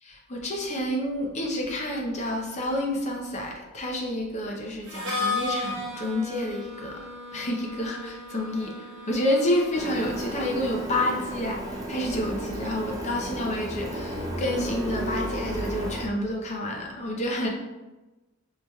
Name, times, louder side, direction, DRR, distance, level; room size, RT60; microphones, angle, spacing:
voice 1, 0.0-7.0 7.3-17.5, left 1 dB, 35° left, 0 dB, 0.6 m, -29 dB
Harmonica, 4.9-10.6, left 3 dB, 60° right, 1.0 m, -35 dB
Printer, 9.7-16.1, equal, 15° right, 0.4 m, -33 dB
4.7 x 2.9 x 2.3 m, 1.1 s
head